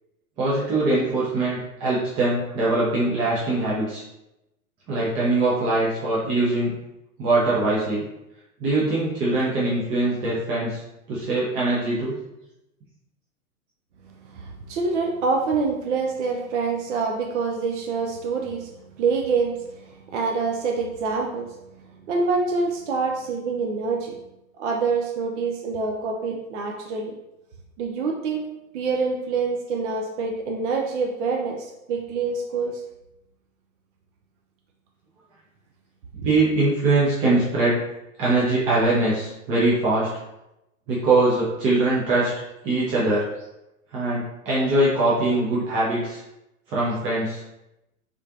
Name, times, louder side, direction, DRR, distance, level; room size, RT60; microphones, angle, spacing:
voice 1, 0.4-4.0 4.9-6.7 7.2-8.0 8.6-10.8 11.1-12.2 36.2-37.8 38.2-40.1 40.9-42.3 42.6-43.2 43.9-46.2 46.7-47.4, right 2 dB, 15° right, -7 dB, 0.3 m, -22 dB
voice 2, 14.3-18.7 19.0-21.5 22.1-24.2 24.6-27.1 27.8-28.5 28.7-32.8 36.2-36.3, right 4 dB, 55° right, 1 dB, 0.6 m, -26 dB
3.4 x 3.1 x 2.5 m, 0.90 s
figure-of-eight pair, 105°, 42 cm